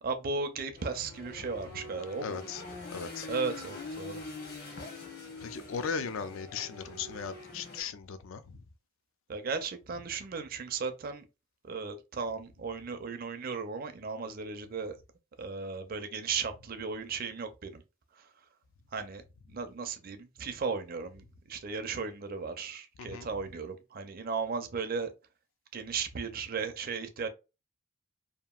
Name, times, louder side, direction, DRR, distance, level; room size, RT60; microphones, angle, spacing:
voice 1, 0.0-2.4 3.3-4.3 9.3-11.2 11.6-15.0 15.4-17.8 18.1-18.3 18.9-25.1 25.7-27.3, right 5 dB, 40° right, 0.4 m, -36 dB
sound 1, 0.7-7.8, left 3 dB, 45° left, 0.9 m, -44 dB
voice 2, 2.2-2.6 2.9-3.3 5.4-8.6 23.0-23.3, left 6 dB, 65° left, 0.3 m, -37 dB
2.8 x 2.4 x 2.3 m
head